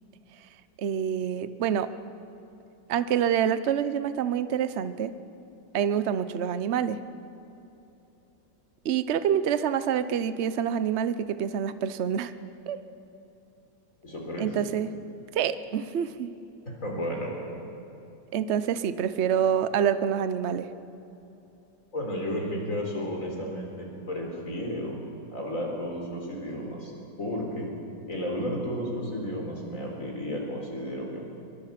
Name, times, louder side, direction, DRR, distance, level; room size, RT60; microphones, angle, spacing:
voice 1, 0.8-1.9 2.9-5.1 5.7-7.0 8.8-12.3 12.7-12.8 14.4-14.9 15.3-16.3 18.3-20.7, right 8 dB, 50° right, 13 dB, 0.8 m, -26 dB
voice 2, 14.0-14.5 16.7-17.6 21.9-25.0 25.3-26.9 27.2-27.7 28.1-31.2, equal, 45° left, 0 dB, 4.5 m, -33 dB
23.0 x 22.5 x 5.9 m, 3.0 s
omnidirectional pair, 2.0 m